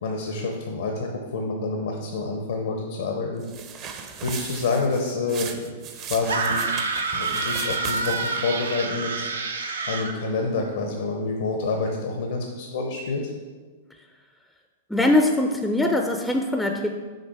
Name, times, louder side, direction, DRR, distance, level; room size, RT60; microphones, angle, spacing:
voice 1, 0.0-3.4 4.2-5.7 6.1-6.6 7.1-9.3 9.9-13.3, left 3 dB, 70° left, 2 dB, 0.8 m, -28 dB
sound 1, 3.4-8.4, right 7 dB, 35° right, 0.7 m, -37 dB
sound 2, 6.3-10.1, right 4 dB, 80° right, 0.7 m, -27 dB
voice 2, 14.9-16.9, left 1 dB, 5° left, 4 dB, 0.4 m, -22 dB
6.6 x 3.9 x 4.7 m, 1.4 s
hypercardioid pair, 110°, 0 cm